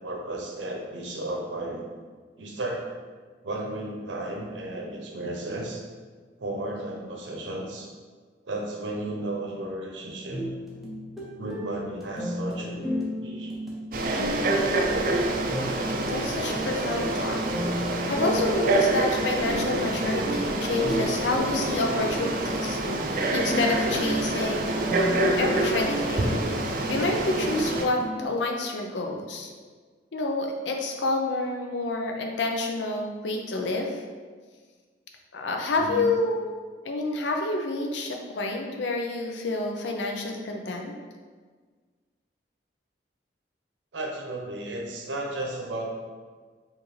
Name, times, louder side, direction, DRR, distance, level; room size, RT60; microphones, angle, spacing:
voice 1, 0.0-1.8 2.4-2.9 3.4-5.8 6.4-7.9 8.4-10.5 11.4-13.6 35.8-36.1 43.9-46.0, right 1 dB, 85° right, 0 dB, 0.7 m, -34 dB
sound 1, 10.3-28.2, equal, ahead, 0.6 m, -34 dB
Frog, 13.9-27.9, right 2 dB, 50° right, 0.4 m, -27 dB
voice 2, 16.1-17.4 17.8-22.8 23.0-24.7 25.4-29.5 30.1-34.0 35.3-36.5 36.8-40.9, left 2 dB, 80° left, 2 dB, 0.6 m, -28 dB
sound 2, 19.4-26.8, right 1 dB, 20° left, 1.0 m, -38 dB
4.9 x 2.6 x 3.1 m, 1.5 s
head